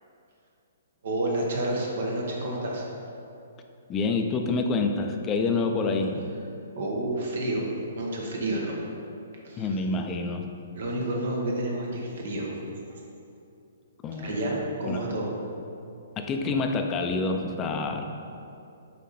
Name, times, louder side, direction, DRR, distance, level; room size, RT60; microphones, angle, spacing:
voice 1, 1.0-2.8 6.7-7.6 7.9-8.8 9.4-9.8 10.7-12.5 12.9-13.0 14.2-15.3, right 1 dB, 70° right, -2 dB, 1.5 m, -29 dB
voice 2, 3.9-6.2 9.6-10.5 14.0-14.4 14.8-15.0 16.2-18.0, left 3 dB, 20° left, 4 dB, 0.5 m, -27 dB
7.3 x 4.2 x 4.3 m, 2.7 s
hypercardioid pair, 150°, 0 cm